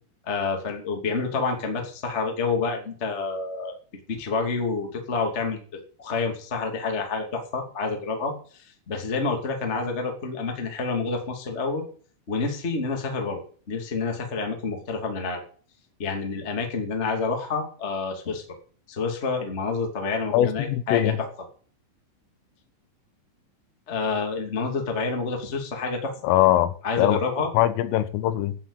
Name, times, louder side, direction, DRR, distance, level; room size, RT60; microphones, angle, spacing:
voice 1, 0.2-3.7 4.1-5.6 6.0-11.8 12.3-15.4 16.0-18.4 18.9-21.3 23.9-26.1 26.8-27.5, left 4 dB, 30° left, 1.2 m, -28 dB
voice 2, 20.3-21.2 26.2-27.2 27.5-28.6, left 13 dB, 80° left, 3.3 m, -22 dB
11.0 x 7.6 x 8.7 m
omnidirectional pair, 6.0 m